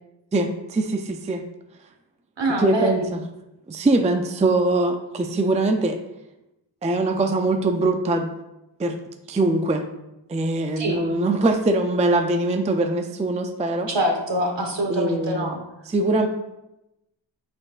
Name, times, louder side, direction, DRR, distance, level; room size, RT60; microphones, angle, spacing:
voice 1, 0.3-1.4 2.6-3.2 3.7-6.0 6.8-8.3 8.8-9.0 9.3-9.8 10.3-13.9 14.9-15.5 15.9-16.3, right 2 dB, 15° right, 5 dB, 0.4 m, -22 dB
voice 2, 2.4-3.0 10.8-11.0 13.9-15.6, right 1 dB, 60° right, 2 dB, 1.2 m, -24 dB
8.7 x 4.4 x 2.4 m, 0.92 s
wide cardioid pair, 80°, 48 cm